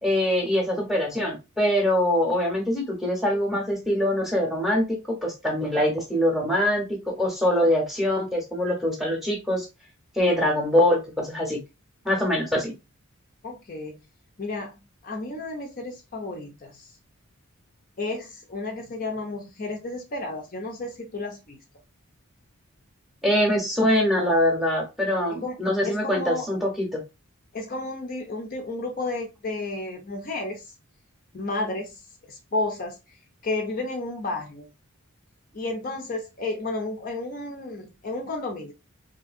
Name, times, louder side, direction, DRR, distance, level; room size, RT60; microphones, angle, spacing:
voice 1, 0.0-9.7 10.2-11.6 12.0-12.7 23.2-27.0, left 1 dB, ahead, -1 dB, 0.8 m, -23 dB
voice 2, 13.4-14.0 14.4-16.9 18.0-21.6 25.3-25.6 25.8-26.5 27.5-30.6 31.3-32.0 32.3-33.0 33.4-34.7 35.5-38.7, left 2 dB, 40° left, 2 dB, 0.5 m, -32 dB
2.6 x 2.6 x 2.5 m, 0.26 s
head